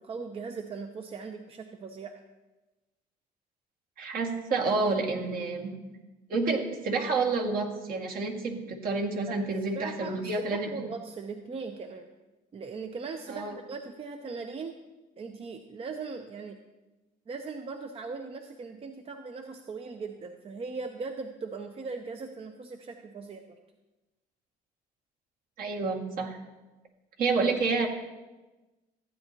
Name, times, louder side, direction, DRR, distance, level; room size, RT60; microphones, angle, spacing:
voice 1, 0.0-2.2 9.3-9.4 9.7-12.1 12.5-14.8 15.2-16.6 17.3-23.6, right 4 dB, 35° right, 6 dB, 0.7 m, -39 dB
voice 2, 4.0-5.7 6.3-10.7 13.3-13.6 25.6-26.4 27.2-27.9, right 3 dB, 60° right, 0 dB, 2.0 m, -29 dB
15.0 x 9.7 x 2.9 m, 1.1 s
cardioid pair, 110°, 17 cm